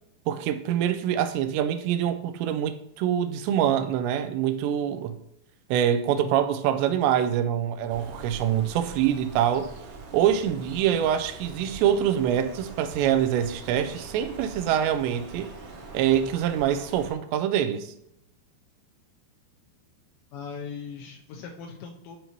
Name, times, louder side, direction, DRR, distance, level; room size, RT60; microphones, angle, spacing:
voice 1, 0.3-5.2 5.7-9.7 10.1-15.5 15.9-17.9, right 10 dB, 85° right, 2.8 m, -25 dB
Bird, 7.9-17.1, right 3 dB, 65° right, 2.3 m, -43 dB
voice 2, 20.3-22.2, left 6 dB, 80° left, 2.9 m, -39 dB
12.5 x 5.2 x 3.0 m
omnidirectional pair, 5.2 m